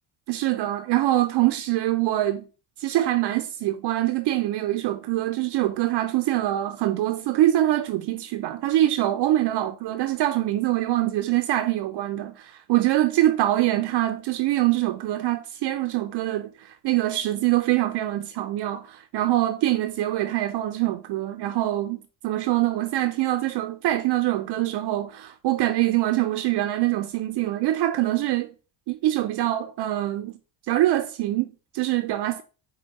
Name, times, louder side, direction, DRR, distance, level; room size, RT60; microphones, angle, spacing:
voice 1, 0.3-2.4 2.8-28.5 28.9-30.3 30.7-32.4, right 14 dB, 55° right, 0.5 m, -24 dB
4.6 x 2.8 x 3.9 m
supercardioid pair, 90°, 49 cm